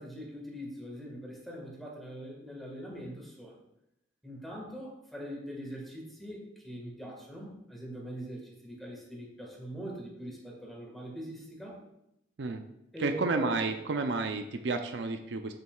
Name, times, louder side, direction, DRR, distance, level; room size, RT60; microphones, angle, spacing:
voice 1, 0.0-3.6 4.2-11.8 12.9-13.6, equal, ahead, -2 dB, 1.6 m, -42 dB
voice 2, 13.0-15.5, right 3 dB, 70° right, 6 dB, 0.5 m, -31 dB
8.2 x 7.6 x 2.4 m, 0.85 s
head